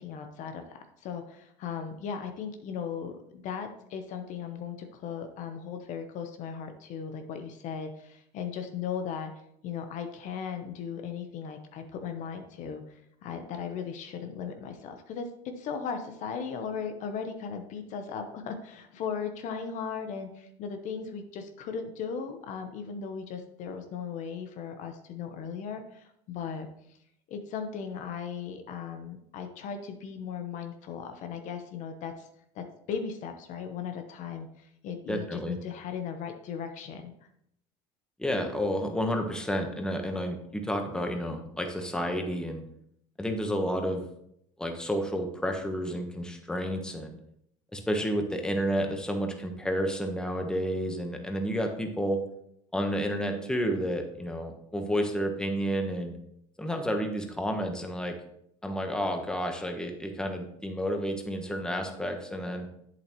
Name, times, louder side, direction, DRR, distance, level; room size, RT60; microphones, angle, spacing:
voice 1, 0.0-9.3 9.6-15.3 15.6-26.7 27.3-32.3 32.5-37.1, left 6 dB, 55° left, 7 dB, 1.0 m, -37 dB
voice 2, 35.1-35.5 38.2-42.6 43.2-44.0 44.6-47.2 47.7-52.2 52.7-56.2 56.6-58.2 58.6-62.7, equal, 5° left, 4 dB, 1.2 m, -30 dB
8.1 x 7.3 x 3.1 m, 0.74 s
supercardioid pair, 105°, 15 cm